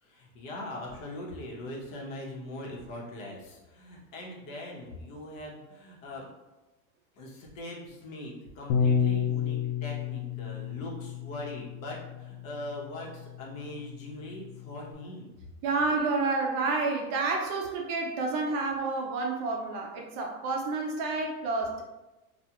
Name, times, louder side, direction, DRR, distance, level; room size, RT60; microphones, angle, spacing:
voice 1, 0.0-6.3 7.2-15.3, left 1 dB, 65° left, -2 dB, 1.0 m, -41 dB
Bass guitar, 8.7-14.9, left 7 dB, 85° left, 0.5 m, -32 dB
voice 2, 15.6-21.8, right 3 dB, 40° right, 1 dB, 0.5 m, -29 dB
2.4 x 2.3 x 2.8 m, 1.0 s
hypercardioid pair, 115°, 43 cm